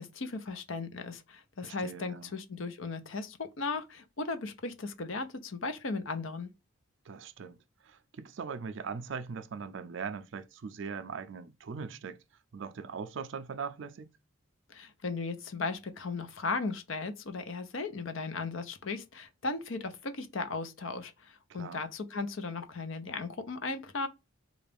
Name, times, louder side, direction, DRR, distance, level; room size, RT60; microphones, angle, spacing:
voice 1, 0.0-6.5 14.7-24.1, left 3 dB, 70° left, 0.6 m, -36 dB
voice 2, 1.6-2.3 7.1-12.2 12.5-14.1 21.5-21.8, right 5 dB, 60° right, 0.4 m, -40 dB
3.8 x 2.4 x 3.4 m
head